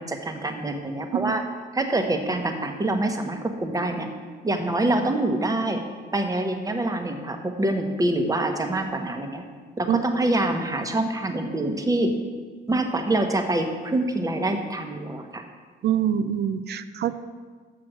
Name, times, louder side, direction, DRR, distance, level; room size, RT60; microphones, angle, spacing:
voice 1, 0.0-1.4 1.7-4.1 4.4-5.8 6.1-9.4 9.8-12.1 12.7-15.4, right 2 dB, 15° right, 5 dB, 1.0 m, -25 dB
voice 2, 15.8-17.2, right 9 dB, 55° right, 12 dB, 0.5 m, -25 dB
6.4 x 6.0 x 6.1 m, 1.5 s
cardioid pair, 90°, 20 cm